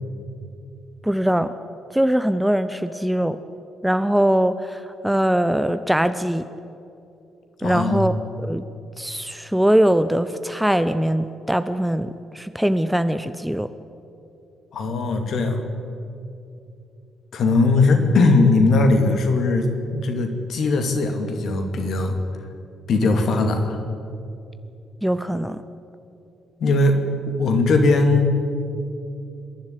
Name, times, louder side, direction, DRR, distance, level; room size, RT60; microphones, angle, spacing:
voice 1, 1.0-1.5 1.9-3.4 3.8-6.4 7.6-8.1 8.5-8.6 9.0-13.7 25.0-25.6, right 1 dB, 5° right, 11 dB, 0.9 m, -21 dB
voice 2, 7.6-8.0 14.7-15.6 17.3-22.2 22.9-23.8 26.6-27.0 27.3-28.3, left 3 dB, 50° left, 5 dB, 2.5 m, -19 dB
26.0 x 11.5 x 9.9 m, 2.7 s
figure-of-eight pair, 40°, 0 cm